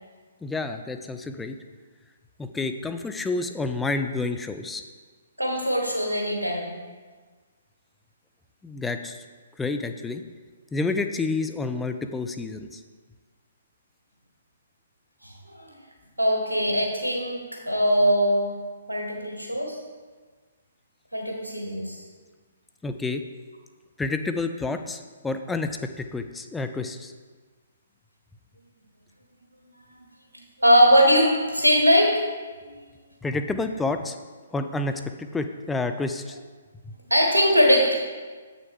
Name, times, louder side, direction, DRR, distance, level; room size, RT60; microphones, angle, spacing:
voice 1, 0.4-1.6 2.4-4.8 8.6-9.2 9.6-10.2 10.7-12.8 22.8-23.2 24.0-27.1 33.2-34.2 34.5-36.4 36.8-36.9, left 3 dB, 5° left, 7 dB, 0.4 m, -29 dB
voice 2, 5.4-6.7 15.2-15.7 16.2-18.5 18.9-19.8 21.1-22.0 30.6-32.2 32.6-32.7 37.0-37.9, equal, 85° right, -1 dB, 1.7 m, -21 dB
7.5 x 6.3 x 3.6 m, 1.4 s
figure-of-eight pair, 125°, 0 cm